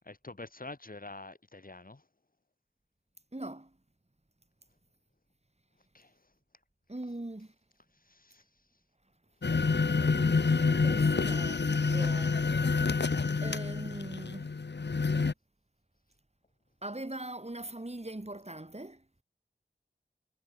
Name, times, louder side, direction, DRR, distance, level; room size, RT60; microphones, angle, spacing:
voice 1, 0.1-2.0 5.9-6.1 8.1-8.4, left 2 dB, 55° left, 1.8 m, -47 dB
voice 2, 3.3-3.7 6.9-7.5 10.2-12.4 13.4-14.5 16.8-19.0, right 1 dB, 40° right, 6.1 m, -41 dB
sound 1, 9.4-15.3, left 4 dB, 90° left, 0.9 m, -28 dB
wide cardioid pair, 50°, 18 cm